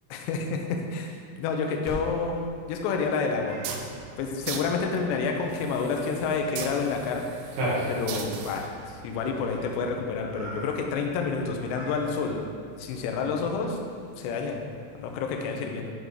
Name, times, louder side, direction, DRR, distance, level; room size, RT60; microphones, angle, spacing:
voice 1, 0.1-2.4 2.7-3.6 4.2-7.6 7.9-8.7 9.0-12.4 12.8-13.8 14.2-14.6 14.9-15.9, left 5 dB, 85° left, 2 dB, 2.5 m, -29 dB
Cat, 1.8-15.5, right 1 dB, 60° right, 2.2 m, -40 dB
sound 1, 3.5-9.8, right 6 dB, 85° right, 2.9 m, -40 dB
8.8 x 4.8 x 5.0 m, 2.2 s
omnidirectional pair, 5.8 m